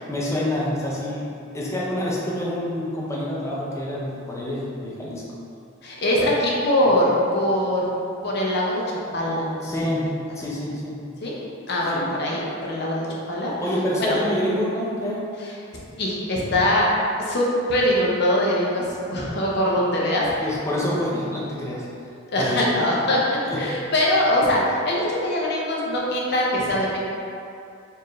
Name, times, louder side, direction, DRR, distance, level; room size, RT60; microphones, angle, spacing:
voice 1, 0.1-1.3 1.5-5.3 9.6-11.0 11.9-12.1 13.5-15.3 20.4-22.1 22.4-22.6 23.4-23.6, left 1 dB, 15° left, -5 dB, 0.6 m, -27 dB
voice 2, 5.8-7.9 8.2-9.6 11.2-11.3 11.7-13.5 14.0-14.2 15.7-16.9 17.2-20.3 22.3-23.2 23.5-27.0, left 1 dB, 55° left, -4 dB, 0.7 m, -22 dB
4.4 x 2.6 x 3.1 m, 2.5 s
head